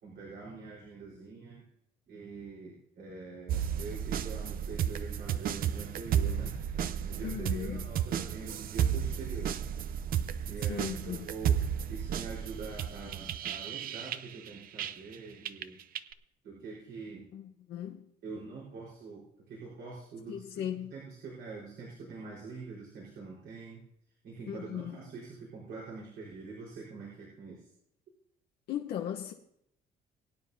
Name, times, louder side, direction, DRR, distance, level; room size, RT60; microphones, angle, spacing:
voice 1, 0.0-1.7 2.1-9.5 10.4-11.6 11.9-15.8 16.4-17.3 18.2-20.6 20.9-23.8 24.2-27.7, right 4 dB, 75° right, 4.3 m, -45 dB
sound 1, 3.5-15.2 15.5-16.1, right 9 dB, 60° right, 0.6 m, -33 dB
voice 2, 7.2-7.9 10.6-11.3 17.3-18.0 20.3-20.9 24.5-25.0 28.7-29.3, left 10 dB, 75° left, 1.0 m, -37 dB
22.0 x 9.6 x 2.7 m
cardioid pair, 110°, 17 cm